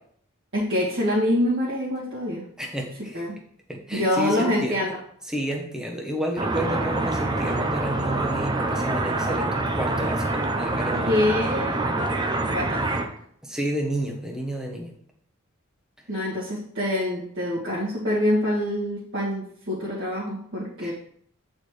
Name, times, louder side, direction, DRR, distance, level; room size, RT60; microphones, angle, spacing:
voice 1, 0.5-2.4 3.1-3.3 3.9-4.9 11.1-11.9 12.5-13.1 16.1-20.9, left 1 dB, 60° right, -9 dB, 1.8 m, -25 dB
voice 2, 2.6-3.2 3.7-4.8 5.3-11.1 13.4-14.9 20.8-20.9, equal, 5° right, -1 dB, 1.0 m, -31 dB
sound 1, 6.4-13.1, right 2 dB, 20° right, 0.5 m, -26 dB
8.7 x 4.2 x 3.2 m, 0.64 s
head